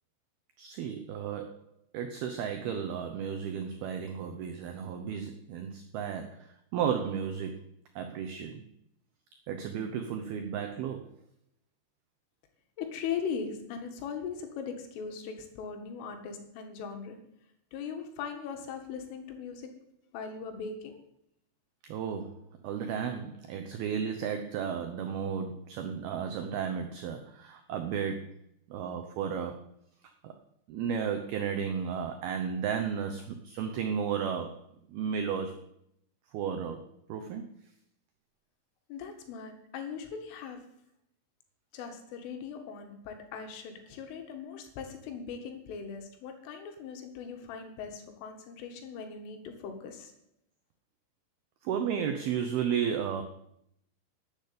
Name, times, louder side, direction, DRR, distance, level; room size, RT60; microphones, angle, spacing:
voice 1, 0.6-1.6 1.9-7.7 8.0-8.6 9.5-11.1 21.8-28.3 28.7-29.6 30.2-30.3 30.7-34.6 34.9-35.6 36.3-37.5 51.6-53.2, right 7 dB, 80° right, 5 dB, 2.2 m, -33 dB
voice 2, 12.8-17.2 17.7-19.7 20.1-21.0 38.9-40.6 41.7-50.1, left 6 dB, 80° left, 5 dB, 4.2 m, -39 dB
12.0 x 8.5 x 8.5 m, 0.75 s
omnidirectional pair, 5.7 m